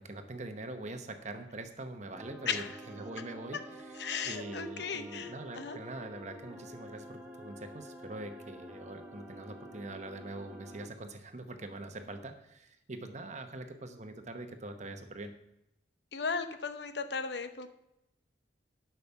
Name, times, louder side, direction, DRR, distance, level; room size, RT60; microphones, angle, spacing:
voice 1, 0.0-3.6 4.2-15.3, right 2 dB, 40° right, 7 dB, 1.0 m, -43 dB
sound 1, 2.1-10.9, equal, 10° right, 1.3 m, -49 dB
voice 2, 2.5-2.8 4.0-5.8 16.1-17.7, left 5 dB, 65° left, 10 dB, 0.8 m, -36 dB
10.5 x 6.0 x 7.0 m, 0.83 s
head